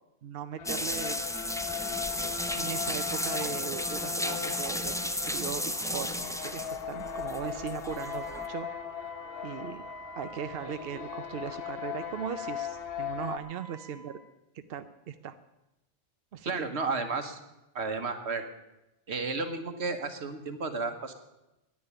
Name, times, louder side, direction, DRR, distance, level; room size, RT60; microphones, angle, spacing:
voice 1, 0.2-1.3 2.5-8.7 9.4-9.8 10.2-14.2 14.5-15.4 16.3-16.7, right 8 dB, 65° right, 9 dB, 0.8 m, -38 dB
sound 1, 0.6-13.4, left 10 dB, 65° left, 0.9 m, -39 dB
sound 2, 0.7-8.5, left 1 dB, 5° left, 0.5 m, -34 dB
Wind instrument woodwind instrument, 7.9-14.1, right 3 dB, 45° left, 4.7 m, -47 dB
voice 2, 16.4-17.4 17.7-18.5 19.1-21.1, right 4 dB, 85° right, 7 dB, 1.6 m, -32 dB
10.5 x 9.9 x 9.9 m, 0.95 s
omnidirectional pair, 1.1 m